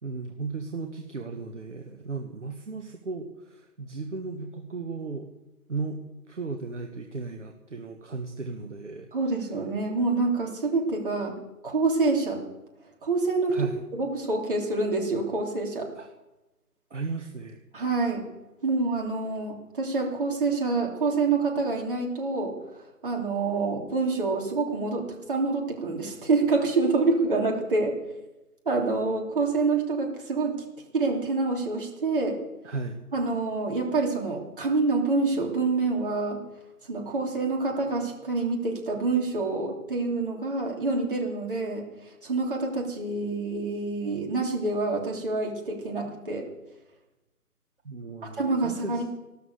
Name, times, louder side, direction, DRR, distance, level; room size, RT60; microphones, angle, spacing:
voice 1, 0.0-5.3 5.7-6.0 6.3-9.1 13.5-13.8 16.0-16.1 16.9-17.6 32.6-33.0 47.8-49.0, right 4 dB, 50° right, 4 dB, 1.6 m, -35 dB
voice 2, 9.1-11.3 11.6-12.4 13.0-13.6 13.9-15.9 17.7-18.2 18.6-22.5 23.0-27.9 28.6-30.5 30.9-32.4 33.1-36.4 36.9-41.8 42.2-46.4 48.4-49.0, right 3 dB, 35° right, 0 dB, 3.1 m, -27 dB
14.5 x 12.5 x 6.7 m, 1.0 s
figure-of-eight pair, 155°, 46 cm